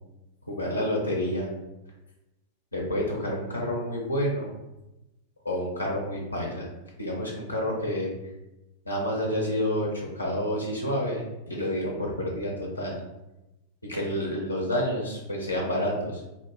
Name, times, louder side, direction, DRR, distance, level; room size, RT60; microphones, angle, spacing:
voice 1, 0.5-1.5 2.7-4.5 5.4-6.7 7.0-8.1 8.9-13.0 13.9-16.2, equal, 80° left, -2 dB, 0.5 m, -29 dB
2.2 x 2.1 x 3.1 m, 0.97 s
figure-of-eight pair, 90°, 0 cm